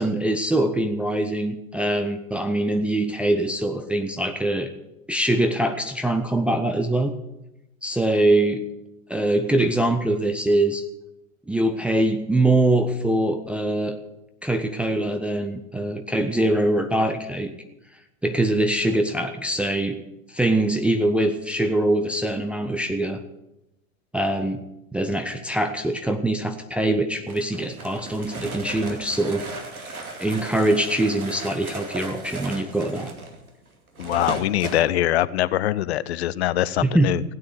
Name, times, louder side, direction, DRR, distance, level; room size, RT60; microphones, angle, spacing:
voice 1, 0.0-4.7 5.1-7.1 7.8-8.6 9.1-10.8 11.5-14.0 14.4-17.5 18.2-20.0 20.3-23.2 24.1-24.6 24.9-29.5 29.8-33.1 36.8-37.1, right 1 dB, 5° right, 5 dB, 0.5 m, -23 dB
sound 1, 27.3-34.9, right 3 dB, 75° right, 2.6 m, -36 dB
voice 2, 34.0-37.2, left 13 dB, 50° left, 18 dB, 0.6 m, -23 dB
16.0 x 9.3 x 8.0 m, 0.92 s
figure-of-eight pair, 90°, 43 cm